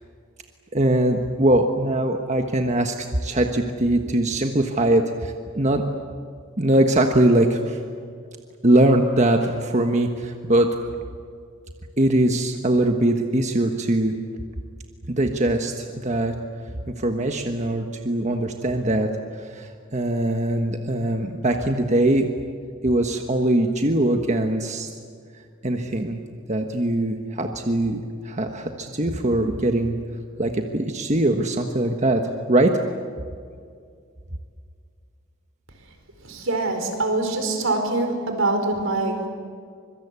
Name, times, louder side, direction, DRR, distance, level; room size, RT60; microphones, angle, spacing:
voice 1, 0.7-2.9 3.2-5.8 6.6-7.8 8.6-10.8 12.0-14.1 15.1-16.3 16.9-22.3 22.8-24.9 25.6-26.2 26.5-29.9 30.4-32.7, right 1 dB, 35° right, 4 dB, 1.4 m, -21 dB
voice 2, 36.2-39.3, right 2 dB, 75° right, 5 dB, 4.7 m, -24 dB
25.0 x 23.5 x 8.4 m, 2.2 s
head